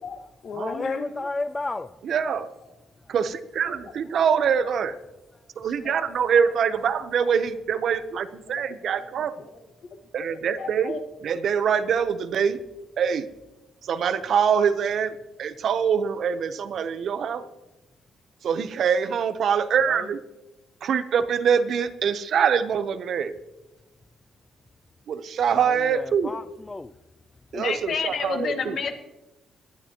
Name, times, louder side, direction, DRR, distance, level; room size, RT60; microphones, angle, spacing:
voice 1, 0.0-1.3 3.7-3.8 5.6-6.0 6.3-6.4 8.8-8.9 10.3-11.0 27.5-29.1, left 5 dB, 60° left, 1.7 m, -32 dB
voice 2, 0.5-1.9 19.9-20.1 25.5-26.9, left 2 dB, 20° left, 0.4 m, -32 dB
voice 3, 2.0-2.5 3.1-5.0 5.6-9.3 10.1-12.6 13.0-13.3 13.8-17.4 18.4-20.2 20.8-23.4 25.1-26.3 27.5-28.8, right 7 dB, 65° right, 0.9 m, -24 dB
19.0 x 11.5 x 3.0 m
cardioid pair, 90°, 0 cm